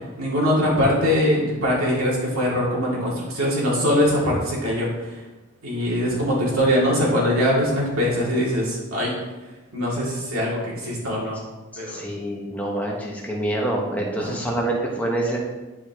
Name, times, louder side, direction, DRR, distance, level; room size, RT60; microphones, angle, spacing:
voice 1, 0.2-5.2 5.6-9.1 9.7-11.4 11.8-12.1 14.2-14.4, equal, 80° right, -5 dB, 2.5 m, -22 dB
voice 2, 11.9-15.4, right 1 dB, 5° left, -2 dB, 1.2 m, -26 dB
11.0 x 5.0 x 3.0 m, 1.2 s
head